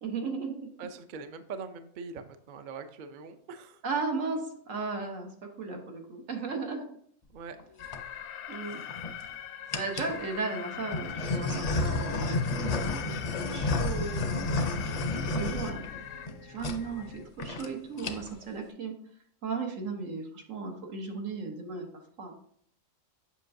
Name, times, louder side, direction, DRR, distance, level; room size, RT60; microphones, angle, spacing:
voice 1, 0.0-0.7 3.8-4.4 4.7-5.3 5.6-6.9 8.5-8.8 9.7-14.6 15.1-15.8 16.4-18.9 19.4-21.9 22.2-22.4, right 4 dB, 85° right, 2 dB, 1.5 m, -35 dB
voice 2, 0.8-3.8 7.3-7.6, right 5 dB, 55° right, 9 dB, 0.6 m, -42 dB
sound 1, 7.6-8.0 8.7-9.2 9.7-10.2 10.9-16.3 16.6-16.8 17.1-17.2 17.4-17.7 17.9-18.4, left 2 dB, 50° left, 0.5 m, -31 dB
Alarm, 7.8-16.3, left 10 dB, 70° left, 0.8 m, -42 dB
sound 2, 10.7-17.3, left 2 dB, 85° left, 1.6 m, -49 dB
7.5 x 5.7 x 2.6 m, 0.65 s
omnidirectional pair, 1.3 m